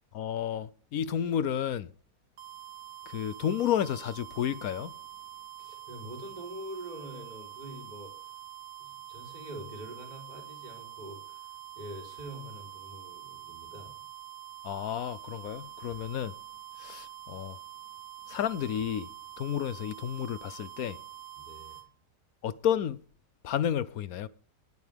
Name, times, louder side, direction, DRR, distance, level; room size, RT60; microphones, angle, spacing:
voice 1, 0.1-1.9 3.1-4.9 14.6-16.3 16.8-17.6 18.3-19.1 19.4-21.0 22.4-23.0 23.4-24.3, left 9 dB, 65° left, 1.1 m, -31 dB
sound 1, 2.4-21.9, right 12 dB, 85° right, 2.0 m, -46 dB
voice 2, 5.6-8.1 8.8-11.3 11.8-14.0 21.4-21.8, right 1 dB, 25° right, 3.9 m, -44 dB
19.0 x 9.4 x 3.5 m
omnidirectional pair, 1.8 m